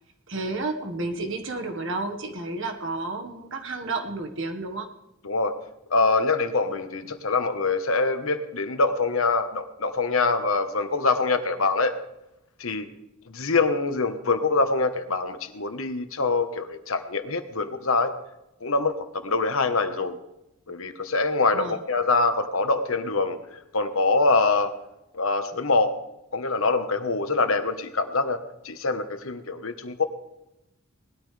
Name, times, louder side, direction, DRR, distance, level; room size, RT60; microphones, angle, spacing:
voice 1, 0.3-4.9 21.5-21.8, right 2 dB, 60° right, 5 dB, 1.5 m, -31 dB
voice 2, 5.9-11.9 12.6-12.9 13.3-18.1 18.6-20.2 20.7-23.4 23.7-24.7 25.1-25.9 26.3-30.0, left 3 dB, 65° left, 8 dB, 1.2 m, -24 dB
19.5 x 13.0 x 3.4 m, 0.88 s
head